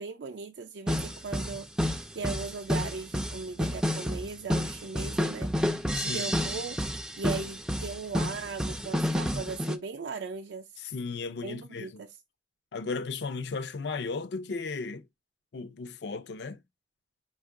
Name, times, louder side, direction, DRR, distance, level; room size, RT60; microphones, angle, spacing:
voice 1, 0.0-1.7 2.1-5.5 6.1-6.8 7.2-10.7 11.4-12.1, right 4 dB, 70° right, 0.4 m, -38 dB
sound 1, 0.9-9.8, equal, 5° right, 0.3 m, -30 dB
voice 2, 5.9-6.3 10.8-11.9 12.7-15.1 15.5-16.6, left 4 dB, 65° left, 0.4 m, -35 dB
5.1 x 2.4 x 3.6 m
head